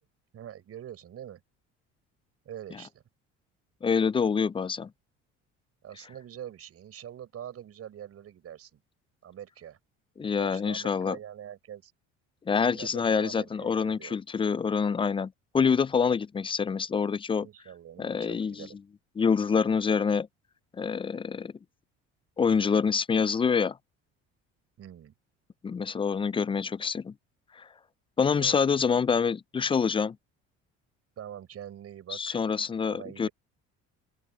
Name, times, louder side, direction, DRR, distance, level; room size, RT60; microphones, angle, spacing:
voice 1, 0.3-1.4 2.5-3.0 5.8-8.8 9.2-9.8 10.4-11.9 12.5-14.2 17.4-18.8 24.8-25.1 28.4-29.0 31.2-32.4 32.9-33.3, right 10 dB, 50° right, 5.5 m, -44 dB
voice 2, 3.8-4.9 10.2-11.2 12.5-17.5 18.0-18.7 19.2-20.3 20.7-21.5 22.4-23.8 25.6-27.1 27.6-27.7 28.2-30.2 32.1-33.3, left 6 dB, 20° left, 0.3 m, -26 dB
open air
supercardioid pair, 95°, 30 cm